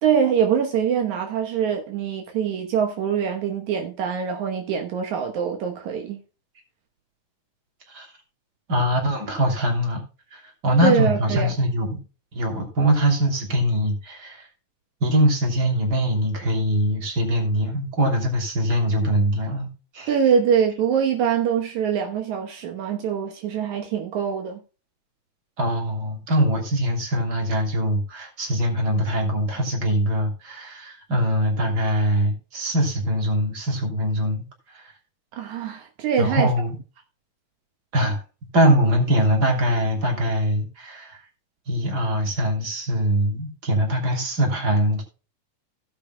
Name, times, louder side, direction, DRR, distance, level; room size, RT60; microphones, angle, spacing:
voice 1, 0.0-6.2 10.8-11.5 20.1-24.6 35.3-36.5, right 7 dB, 75° right, 2.5 m, -23 dB
voice 2, 8.7-10.0 10.3-12.0 12.3-14.5 15.0-20.1 25.6-34.9 36.2-36.8 37.9-38.2 38.5-41.2 41.7-45.0, equal, 35° right, 3.3 m, -22 dB
16.5 x 8.6 x 2.2 m
omnidirectional pair, 3.5 m